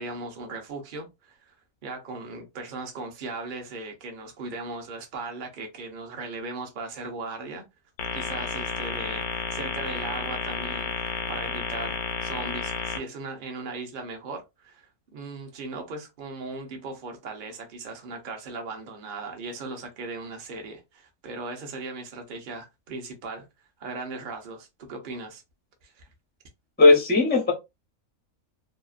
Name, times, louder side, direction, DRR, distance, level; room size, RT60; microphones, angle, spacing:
voice 1, 0.0-1.5 1.8-7.6 8.1-23.5 23.8-25.4 25.8-26.0, right 3 dB, 50° right, 0.7 m, -38 dB
sound 1, 8.0-13.0, left 6 dB, 85° left, 1.1 m, -31 dB
voice 2, 26.8-27.5, left 3 dB, 15° left, 0.3 m, -17 dB
2.8 x 2.4 x 2.4 m
omnidirectional pair, 1.5 m